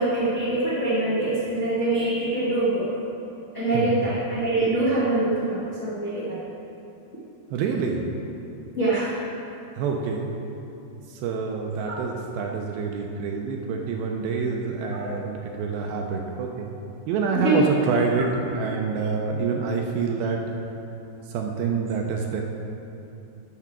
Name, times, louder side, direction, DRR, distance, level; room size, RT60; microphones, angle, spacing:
voice 1, 0.0-2.9 3.5-6.4 8.7-9.1 11.9-12.0 15.0-15.2 17.4-17.6, right 2 dB, 75° left, -11 dB, 0.6 m, -24 dB
voice 2, 3.7-4.0 7.5-8.0 9.8-10.3 11.1-16.7 17.1-20.4 21.3-22.4, right 5 dB, 80° right, 1 dB, 2.3 m, -27 dB
12.5 x 4.7 x 6.0 m, 2.8 s
omnidirectional pair, 4.7 m